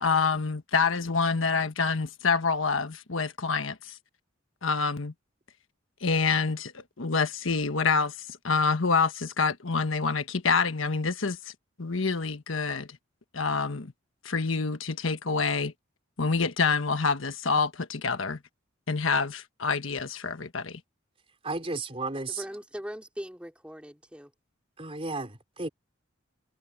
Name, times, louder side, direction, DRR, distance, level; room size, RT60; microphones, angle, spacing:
voice 1, 0.0-4.0 4.6-5.1 6.0-11.5 11.8-12.9 13.3-13.9 14.2-15.7 16.2-18.4 18.9-20.8, left 4 dB, 80° left, 1.3 m, -27 dB
voice 2, 21.4-22.4 24.8-25.7, right 3 dB, 30° right, 3.8 m, -33 dB
voice 3, 22.3-24.3, equal, 5° right, 3.9 m, -40 dB
head